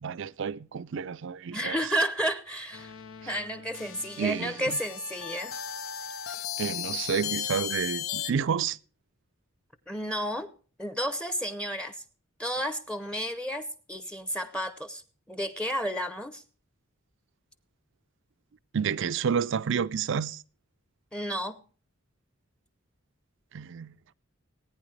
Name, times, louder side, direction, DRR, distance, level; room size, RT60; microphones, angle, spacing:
voice 1, 0.0-1.8 4.2-4.8 6.6-8.8 18.7-20.4 23.5-23.9, right 6 dB, 65° right, 0.4 m, -30 dB
voice 2, 1.5-2.9 3.3-5.6 9.9-10.5 10.8-12.0 12.4-15.0 15.3-16.4 21.1-21.6, equal, 5° left, 0.7 m, -32 dB
sound 1, 2.7-8.3, left 10 dB, 75° left, 0.7 m, -36 dB
19.0 x 9.5 x 3.3 m
head